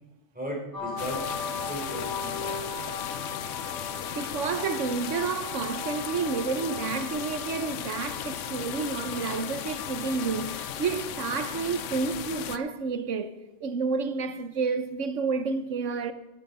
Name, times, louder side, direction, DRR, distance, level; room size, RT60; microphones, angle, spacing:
voice 1, 0.3-2.6, equal, 5° right, 4.0 m, -37 dB
sound 1, 0.7-12.3, left 4 dB, 15° left, 4.5 m, -39 dB
sound 2, 1.0-12.6, left 10 dB, 85° left, 1.0 m, -36 dB
voice 2, 4.2-16.1, right 5 dB, 80° right, 1.3 m, -30 dB
14.0 x 10.0 x 5.5 m
omnidirectional pair, 1.3 m